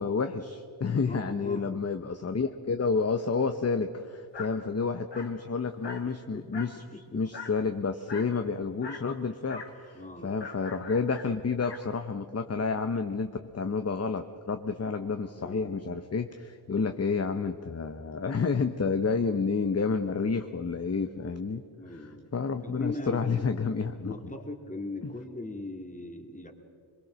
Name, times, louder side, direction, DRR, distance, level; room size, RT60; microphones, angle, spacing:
voice 1, 0.0-6.8 7.1-24.1 25.0-25.1, left 5 dB, 35° left, 8 dB, 0.9 m, -30 dB
voice 2, 1.0-1.7 6.0-6.5 6.9-7.2 9.9-10.3 15.3-15.8 21.8-22.3 22.6-23.6 24.0-26.5, left 2 dB, 15° left, 4 dB, 2.4 m, -40 dB
Dog, 4.3-4.6 5.1-5.4 5.8-6.1 6.5-6.8 7.3-7.6 8.1-8.4 8.8-9.1 9.5-9.8 10.4-11.9, left 4 dB, 65° left, 2.2 m, -42 dB
22.5 x 22.0 x 6.3 m, 2.3 s
wide cardioid pair, 80°, 45 cm